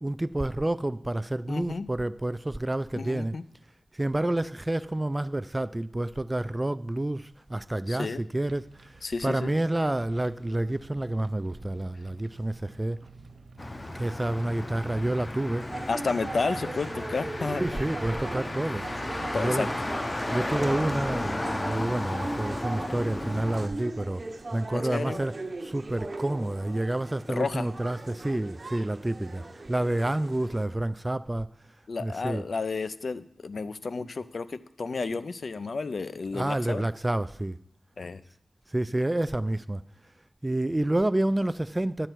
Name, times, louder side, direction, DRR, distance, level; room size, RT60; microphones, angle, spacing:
voice 1, 0.0-3.3 3.9-13.0 13.9-15.7 17.5-18.9 19.3-19.7 20.3-24.2 24.5-25.3 25.6-29.4 29.7-31.5 32.0-32.4 36.3-37.6 38.7-39.8 40.4-42.1, right 1 dB, 20° right, 0.3 m, -29 dB
voice 2, 1.5-1.9 3.0-3.4 7.9-8.2 9.0-9.5 15.9-17.8 19.3-19.7 24.7-25.2 27.3-27.7 28.1-28.2 31.9-36.8 38.0-38.2, left 4 dB, 70° left, 0.5 m, -32 dB
sound 1, 8.4-19.7, right 3 dB, 85° right, 0.6 m, -51 dB
Motor vehicle (road), 13.6-23.7, left 1 dB, 30° left, 0.7 m, -34 dB
sound 2, 15.6-30.7, right 2 dB, 50° right, 0.7 m, -39 dB
10.0 x 7.8 x 4.6 m
wide cardioid pair, 65°, 0 cm